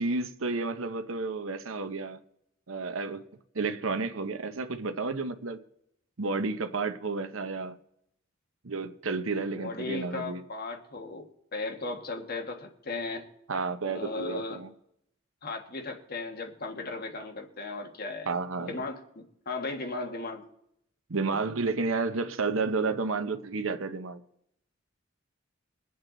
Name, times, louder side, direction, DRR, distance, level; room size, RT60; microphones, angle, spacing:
voice 1, 0.0-2.2 2.7-3.2 3.5-5.6 6.2-7.8 8.6-10.4 13.5-14.7 18.3-18.8 21.1-24.2, right 3 dB, 75° right, 0.9 m, -31 dB
voice 2, 9.5-13.3 13.8-14.6 15.4-20.4, left 3 dB, 50° left, 1.6 m, -36 dB
23.0 x 8.0 x 4.0 m
head